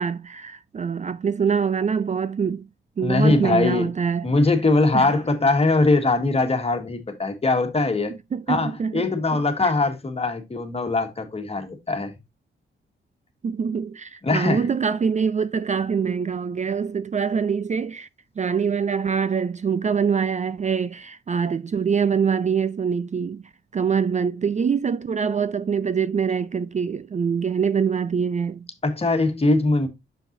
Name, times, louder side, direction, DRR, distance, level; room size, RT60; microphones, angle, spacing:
voice 1, 0.0-2.7 3.0-4.3 4.9-5.1 8.3-9.1 9.3-9.7 13.4-18.1 18.4-23.4 23.7-28.7, right 6 dB, 35° right, 0.4 m, -24 dB
voice 2, 3.0-3.9 4.2-8.1 8.5-12.1 14.2-14.6 28.8-29.9, left 3 dB, 30° left, 1.7 m, -21 dB
7.2 x 5.8 x 2.6 m
cardioid pair, 100°, 21 cm